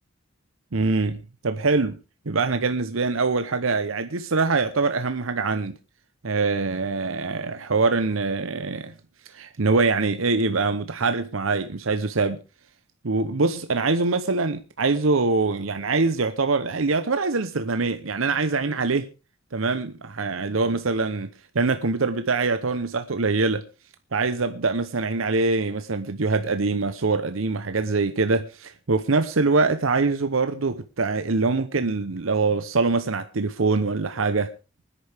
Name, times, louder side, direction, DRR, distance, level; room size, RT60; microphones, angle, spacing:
voice 1, 0.7-2.0 2.3-5.8 6.2-8.9 9.3-12.4 13.0-19.1 19.5-21.3 21.5-23.6 24.1-34.5, right 3 dB, 80° right, 0.9 m, -24 dB
24.5 x 10.0 x 3.5 m
head